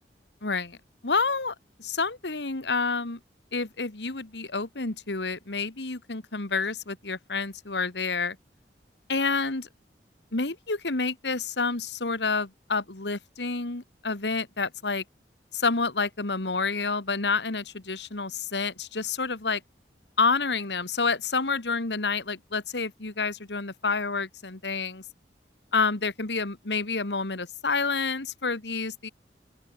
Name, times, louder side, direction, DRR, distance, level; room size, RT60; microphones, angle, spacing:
voice 1, 0.4-0.8 1.0-1.5 1.8-3.2 3.5-8.4 9.1-9.7 10.3-15.0 15.5-19.6 20.2-25.0 25.7-29.1, left 4 dB, 80° left, 1.9 m, -29 dB
open air
head